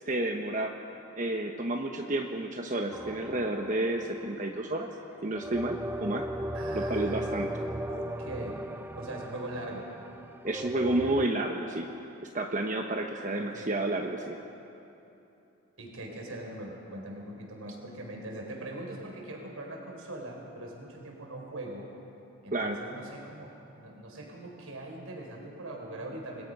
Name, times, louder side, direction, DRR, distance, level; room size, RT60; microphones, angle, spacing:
voice 1, 0.1-0.7 1.1-4.9 5.2-6.3 6.7-7.5 10.4-11.9 12.3-14.4 22.5-22.8, right 2 dB, 35° right, 2 dB, 1.1 m, -30 dB
sound 1, 2.9-4.6 5.3-11.3, right 1 dB, 10° right, 0.4 m, -37 dB
voice 2, 6.5-8.6 9.0-9.9 13.4-13.7 15.8-21.9 22.4-26.4, right 1 dB, 85° right, 0 dB, 4.5 m, -41 dB
29.0 x 21.0 x 5.5 m, 2.9 s
head